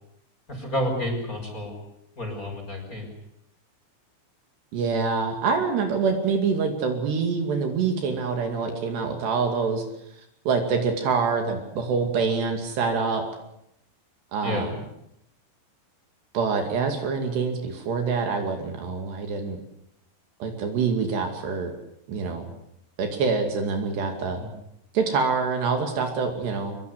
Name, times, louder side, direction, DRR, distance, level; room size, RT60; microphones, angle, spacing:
voice 1, 0.5-1.8 2.2-3.1 14.4-14.7 24.4-24.5, left 1 dB, 15° left, 2 dB, 6.0 m, -30 dB
voice 2, 4.7-9.8 10.5-13.2 14.3-14.7 16.3-19.6 20.4-21.7 22.1-22.5 23.0-24.4 24.9-26.8, right 5 dB, 65° right, 4 dB, 4.5 m, -25 dB
24.5 x 22.0 x 8.2 m, 0.79 s
omnidirectional pair, 5.4 m